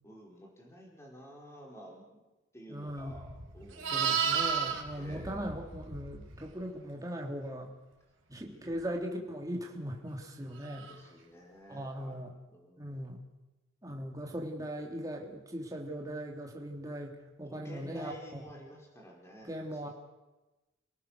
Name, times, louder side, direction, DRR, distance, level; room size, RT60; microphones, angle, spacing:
voice 1, 0.0-2.2 2.5-5.3 8.4-8.9 10.7-12.2 12.5-13.1 17.5-19.9, equal, 15° left, -2 dB, 4.7 m, -51 dB
voice 2, 2.7-3.2 3.9-7.7 8.3-10.9 11.7-12.3 12.8-13.2 13.8-18.4 19.4-19.9, equal, 20° right, 0 dB, 3.4 m, -39 dB
Livestock farm animals working animals, 3.1-6.4 10.7-11.0, right 6 dB, 85° right, 4.1 m, -33 dB
29.5 x 18.5 x 6.5 m, 1.1 s
head